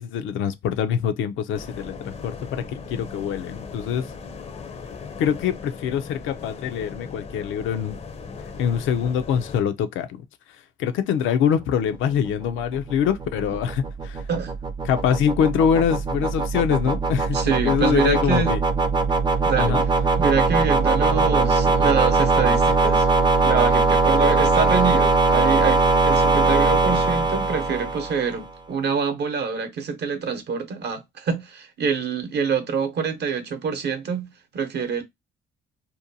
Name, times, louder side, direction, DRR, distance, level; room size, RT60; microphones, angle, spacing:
voice 1, 0.0-4.1 5.2-8.0 8.6-10.3 10.8-14.3 14.8-17.4 17.6-18.6 19.6-19.8, left 8 dB, 85° left, 0.5 m, -24 dB
sound 1, 1.5-9.6, left 5 dB, 35° left, 0.5 m, -38 dB
sound 2, 12.3-28.4, right 3 dB, 20° right, 0.4 m, -21 dB
voice 2, 17.3-18.5 19.4-19.9 20.2-23.1 23.4-35.0, right 6 dB, 60° right, 0.8 m, -25 dB
2.6 x 2.2 x 2.6 m
cardioid pair, 90°, 20 cm